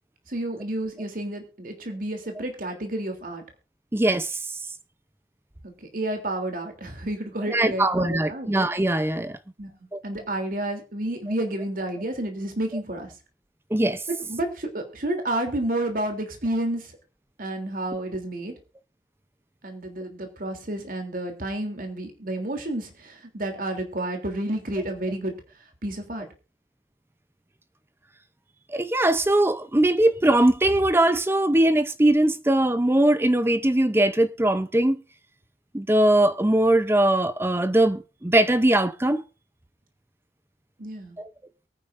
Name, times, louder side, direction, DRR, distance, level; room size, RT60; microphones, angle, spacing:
voice 1, 0.3-3.4 5.6-8.5 9.6-9.7 10.0-13.1 14.2-16.9 17.4-18.5 19.6-25.3 25.8-26.3 40.8-41.2, right 1 dB, 50° right, 3.2 m, -30 dB
voice 2, 3.9-4.6 7.5-9.4 9.9-10.0 13.7-14.0 28.7-35.0 35.7-39.2 41.2-41.3, right 1 dB, 15° right, 0.6 m, -21 dB
23.0 x 9.5 x 2.6 m
head